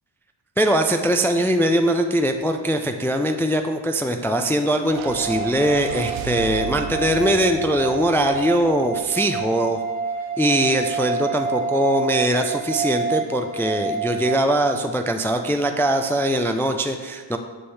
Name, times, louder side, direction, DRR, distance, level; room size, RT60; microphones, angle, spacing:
voice 1, 0.6-9.8 10.4-17.4, right 1 dB, 5° left, 6 dB, 0.3 m, -21 dB
sound 1, 4.9-9.3, right 7 dB, 85° right, 0.6 m, -36 dB
sound 2, 5.0-14.4, right 4 dB, 20° right, 1.2 m, -28 dB
7.0 x 5.5 x 3.3 m, 1.3 s
cardioid pair, 70°, 47 cm